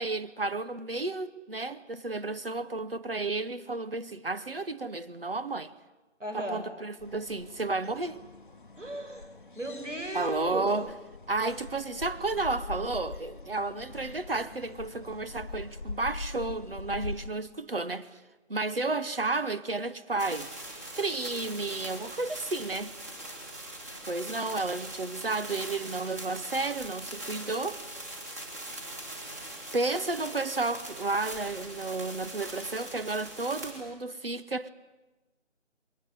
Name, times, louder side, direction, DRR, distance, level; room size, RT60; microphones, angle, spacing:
voice 1, 0.0-5.7 6.3-8.2 10.1-10.9 11.3-18.2 18.5-20.5 20.9-22.9 24.1-27.8 29.4-34.7, right 3 dB, 50° right, 1.0 m, -32 dB
voice 2, 6.2-6.6 8.8-9.3 9.5-10.6, right 1 dB, 85° right, 6.2 m, -35 dB
sound 1, 7.0-17.3, left 3 dB, 45° left, 1.0 m, -43 dB
sound 2, 20.2-33.7, right 1 dB, 15° right, 2.1 m, -42 dB
22.0 x 18.0 x 9.9 m
figure-of-eight pair, 165°, 36 cm